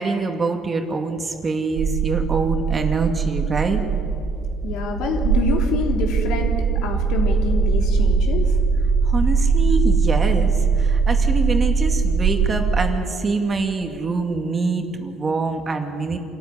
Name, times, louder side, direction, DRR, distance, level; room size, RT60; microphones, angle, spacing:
voice 1, 0.0-3.8 9.1-16.2, right 3 dB, 25° right, 4 dB, 2.1 m, -25 dB
sound 1, 1.8-12.9, right 5 dB, 85° right, 2.3 m, -20 dB
voice 2, 4.6-8.5, left 4 dB, 70° left, 2 dB, 3.4 m, -26 dB
26.0 x 14.0 x 10.0 m, 2.6 s
cardioid pair, 125°, 0 cm